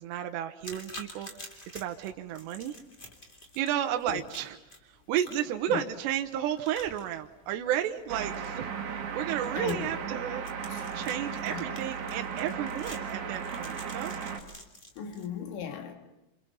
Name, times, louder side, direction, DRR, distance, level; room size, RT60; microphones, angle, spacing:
voice 1, 0.0-2.8 3.6-4.6 4.9-10.4 10.9-14.1, right 11 dB, 75° right, 5 dB, 3.0 m, -33 dB
sound 1, 0.6-15.2, left 1 dB, 20° left, 1.4 m, -49 dB
sound 2, 8.1-14.4, right 6 dB, 50° right, 2.7 m, -36 dB
voice 2, 9.6-9.9 10.7-10.8 11.5-11.7 15.0-15.9, left 8 dB, 80° left, 4 dB, 4.2 m, -36 dB
28.0 x 28.0 x 5.7 m, 0.95 s
omnidirectional pair, 5.4 m